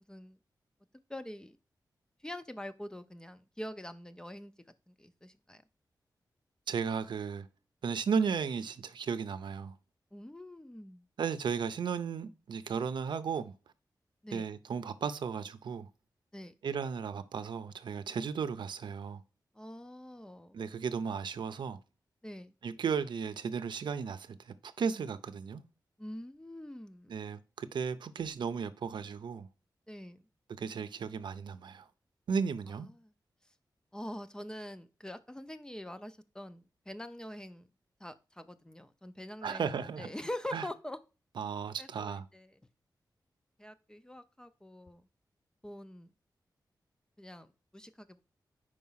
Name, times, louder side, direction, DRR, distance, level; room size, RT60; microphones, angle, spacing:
voice 1, 1.1-1.6 2.2-4.5 4.9-5.6 10.1-11.1 14.2-14.5 16.3-16.5 19.5-20.6 22.2-22.5 26.0-27.1 29.9-30.3 32.7-33.1 33.9-37.7 38.0-41.0 41.8-42.6 43.6-45.0 45.6-46.1 47.2-48.2, left 1 dB, 10° left, 0.4 m, -44 dB
voice 2, 6.7-7.5 7.8-9.7 11.2-13.5 14.3-15.9 16.6-19.2 20.5-21.8 22.6-25.6 27.1-29.5 30.5-31.8 32.3-32.9 39.4-40.1 40.5-40.7 41.4-42.2, right 6 dB, 85° right, 0.6 m, -35 dB
5.0 x 4.8 x 5.5 m
wide cardioid pair, 175°, 8 cm